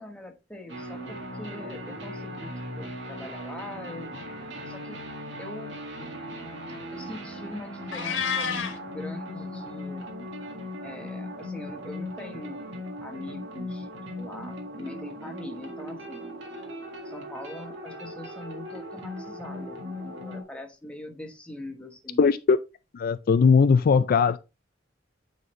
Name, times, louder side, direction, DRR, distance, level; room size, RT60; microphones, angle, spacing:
voice 1, 0.0-5.0 5.4-5.7 6.9-10.1 10.8-12.6 13.0-13.9 14.2-16.4 17.0-22.2, left 1 dB, 5° left, 1.1 m, -42 dB
sound 1, 0.7-20.4, equal, 70° right, 2.0 m, -38 dB
Meow, 7.9-8.8, left 6 dB, 80° left, 1.4 m, -29 dB
voice 2, 22.2-22.6 22.9-24.4, left 5 dB, 50° left, 0.3 m, -19 dB
9.2 x 4.0 x 3.1 m
head